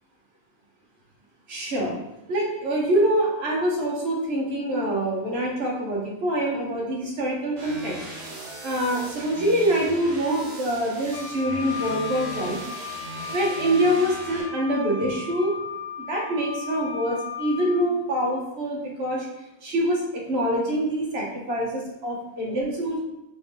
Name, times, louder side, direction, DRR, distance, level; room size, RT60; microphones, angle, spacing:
voice 1, 1.5-2.0 2.3-8.0 8.6-12.6 13.3-15.5 16.1-19.3 19.6-23.0, equal, 55° right, -3 dB, 1.2 m, -25 dB
sound 1, 7.6-14.4, right 1 dB, 70° right, 1.4 m, -38 dB
Wind instrument woodwind instrument, 11.1-17.9, left 5 dB, 85° left, 1.0 m, -36 dB
3.4 x 3.1 x 3.6 m, 0.92 s
omnidirectional pair, 1.4 m